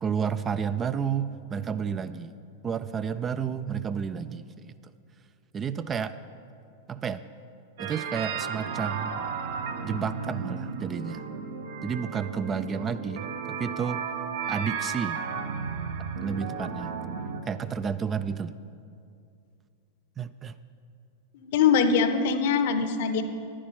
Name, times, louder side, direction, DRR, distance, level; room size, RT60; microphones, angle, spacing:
voice 1, 0.0-2.3 2.6-4.5 5.5-6.2 6.9-7.2 7.8-9.2 9.8-11.3 11.8-14.0 14.5-15.2 16.2-16.9 17.5-18.5 20.2-20.6, right 7 dB, 25° right, 13 dB, 0.3 m, -31 dB
sound 1, 7.8-17.4, right 6 dB, 55° right, 0.8 m, -34 dB
voice 2, 21.4-23.2, left 6 dB, 50° left, 10 dB, 0.7 m, -22 dB
10.0 x 10.0 x 5.6 m, 2.4 s
figure-of-eight pair, 95°, 0 cm